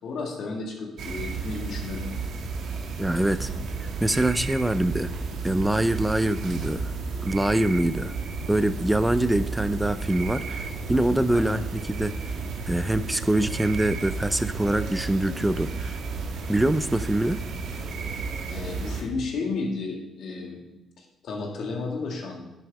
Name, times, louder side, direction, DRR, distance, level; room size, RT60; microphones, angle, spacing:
voice 1, 0.0-2.1 11.3-11.5 18.5-20.6 21.0-22.4, left 3 dB, 70° left, 0 dB, 2.2 m, -33 dB
sound 1, 1.0-19.0, right 4 dB, 80° right, 1.3 m, -33 dB
voice 2, 3.0-3.5 4.0-5.1 5.4-6.9 7.2-8.1 8.5-12.1 12.7-16.0 16.5-17.4, right 1 dB, 10° right, 13 dB, 0.4 m, -24 dB
10.5 x 7.5 x 3.6 m, 0.99 s
cardioid pair, 90°, 0 cm